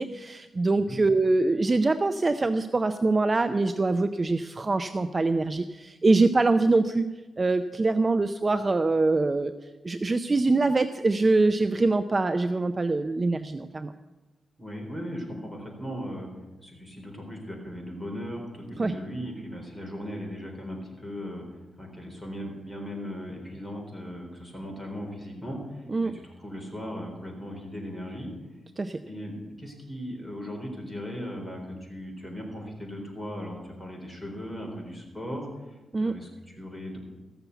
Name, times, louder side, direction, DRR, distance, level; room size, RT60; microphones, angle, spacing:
voice 1, 0.0-7.0 7.4-9.5 9.8-13.9 18.8-18.9 25.9-26.1 28.8-29.0 35.9-36.2, right 3 dB, 30° right, 10 dB, 0.5 m, -24 dB
voice 2, 14.6-16.3 16.6-28.3 29.0-37.0, equal, 5° left, -1 dB, 4.0 m, -38 dB
14.5 x 7.0 x 8.1 m, 1.1 s
cardioid pair, 95°, 0 cm